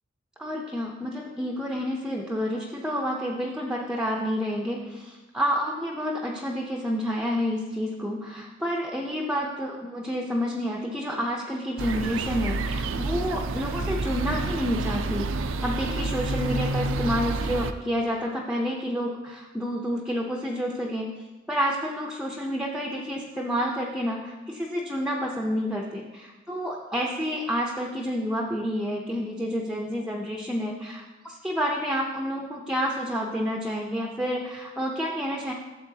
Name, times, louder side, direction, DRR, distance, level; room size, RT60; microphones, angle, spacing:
voice 1, 0.4-21.1 21.5-35.5, equal, 5° right, -1 dB, 0.5 m, -29 dB
sound 1, 11.8-17.7, right 3 dB, 85° right, 0.4 m, -29 dB
12.5 x 7.4 x 2.7 m, 1.1 s
head